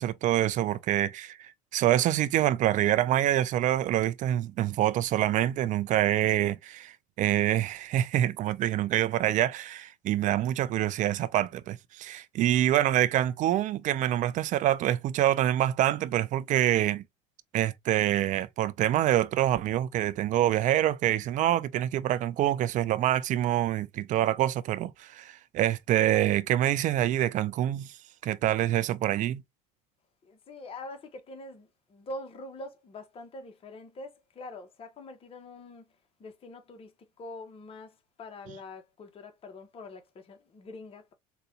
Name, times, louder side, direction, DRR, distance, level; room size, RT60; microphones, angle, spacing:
voice 1, 0.0-17.0 17.5-27.9 28.2-29.4, right 12 dB, 40° right, 0.4 m, -26 dB
voice 2, 30.2-35.9 36.2-36.9 37.2-41.1, left 2 dB, 30° left, 0.8 m, -44 dB
3.9 x 2.2 x 2.7 m
supercardioid pair, 95°, 19 cm